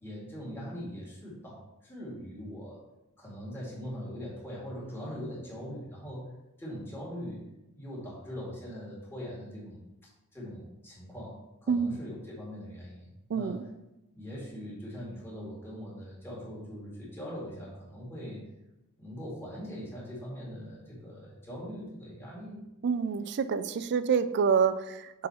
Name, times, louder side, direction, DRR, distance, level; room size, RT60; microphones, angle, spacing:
voice 1, 0.0-2.8 3.2-6.3 6.6-7.4 7.7-9.8 10.3-13.6 14.1-18.5 19.0-22.6, equal, 10° left, -5 dB, 1.9 m, -41 dB
voice 2, 11.7-12.0 13.3-13.6 22.8-25.3, right 6 dB, 50° right, 13 dB, 0.4 m, -27 dB
6.6 x 3.9 x 4.2 m, 0.94 s
head